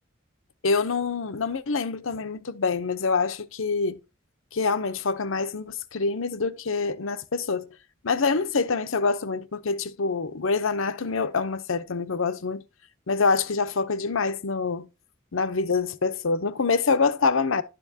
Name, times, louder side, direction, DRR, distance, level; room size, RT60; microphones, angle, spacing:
voice 1, 0.6-4.0 4.5-7.7 8.0-12.6 13.1-14.9 15.3-17.6, left 4 dB, 80° left, 0.8 m, -26 dB
11.5 x 6.9 x 2.8 m
head